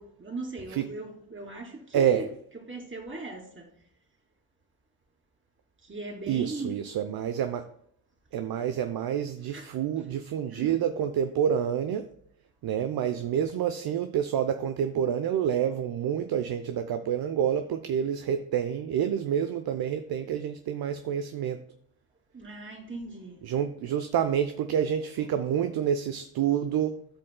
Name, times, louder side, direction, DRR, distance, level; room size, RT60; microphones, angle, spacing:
voice 1, 0.0-2.3 2.5-3.7 5.8-6.8 9.5-9.7 10.0-10.1 10.5-10.8 22.3-23.4 24.9-25.0, right 2 dB, 25° right, 2.8 m, -39 dB
voice 2, 1.9-2.3 6.3-7.6 8.3-12.1 12.6-21.6 23.4-27.1, right 9 dB, 55° right, 0.7 m, -28 dB
14.0 x 5.2 x 2.2 m
hypercardioid pair, 50°, 44 cm